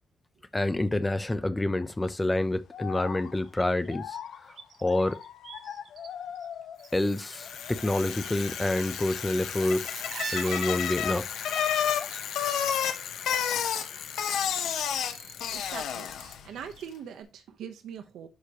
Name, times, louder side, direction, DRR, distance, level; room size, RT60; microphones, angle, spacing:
voice 1, 0.5-4.2 4.5-4.6 4.8-5.2 6.9-10.0 10.3-11.3, left 2 dB, 10° left, 0.6 m, -28 dB
sound 1, 1.8-2.1 2.7-7.1 7.3-8.1 8.5-8.8 9.6-11.2 11.5-12.3, left 9 dB, 65° left, 0.7 m, -43 dB
sound 2, 3.3-6.1 6.3-7.4 7.6-13.6 13.8-16.9 17.2-17.3, right 5 dB, 50° right, 1.2 m, -45 dB
Bicycle, 7.0-16.5, left 9 dB, 85° left, 1.0 m, -31 dB
voice 2, 15.5-18.3, right 8 dB, 90° right, 1.0 m, -42 dB
11.5 x 4.9 x 3.0 m
cardioid pair, 175°, 0 cm